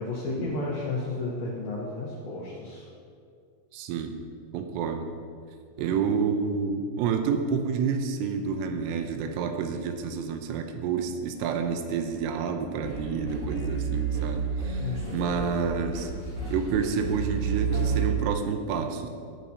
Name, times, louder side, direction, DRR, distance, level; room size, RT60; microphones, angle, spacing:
voice 1, 0.0-2.9 5.8-6.0 14.8-15.2, left 3 dB, 70° left, -5 dB, 2.3 m, -33 dB
voice 2, 3.7-4.2 4.5-5.1 5.8-16.1 16.5-19.1, right 6 dB, 90° right, 6 dB, 3.3 m, -29 dB
sound 1, 12.8-18.0, right 4 dB, 70° right, 0.7 m, -31 dB
17.5 x 7.3 x 2.8 m, 2.3 s
omnidirectional pair, 5.7 m